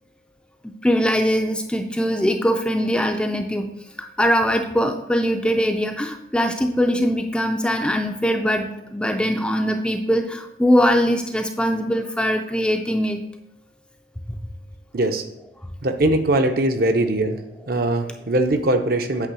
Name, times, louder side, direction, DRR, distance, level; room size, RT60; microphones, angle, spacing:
voice 1, 0.8-3.7 4.0-13.2, equal, 5° left, 4 dB, 0.4 m, -21 dB
voice 2, 15.8-17.4 17.7-19.3, right 1 dB, 55° right, 6 dB, 0.7 m, -21 dB
8.3 x 3.4 x 6.2 m, 0.81 s
head